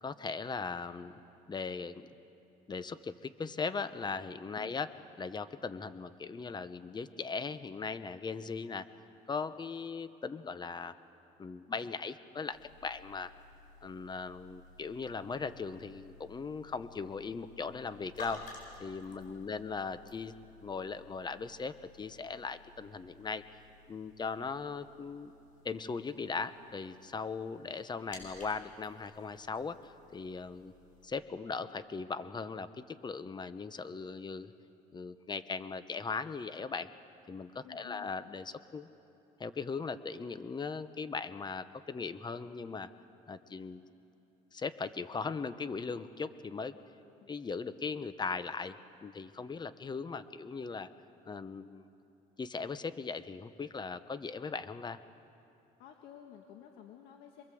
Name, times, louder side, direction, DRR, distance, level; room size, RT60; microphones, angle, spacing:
voice 1, 0.0-1.2 1.5-2.1 2.7-4.9 5.2-8.9 9.3-10.9 11.4-13.3 13.8-18.4 18.8-23.4 23.9-25.3 25.6-30.7 31.0-34.5 34.9-36.9 37.3-38.9 39.4-42.9 43.3-43.8 44.5-46.7 47.3-50.9 51.2-51.9 52.4-55.0, left 4 dB, 25° left, 13 dB, 1.0 m, -39 dB
sound 1, 12.5-31.1, left 3 dB, 50° left, 7.0 m, -56 dB
voice 2, 19.1-19.7 37.6-38.1 47.2-47.6 55.8-57.4, left 9 dB, 85° left, 3 dB, 1.6 m, -53 dB
27.0 x 22.0 x 7.8 m, 2.8 s
cardioid pair, 110°, 17 cm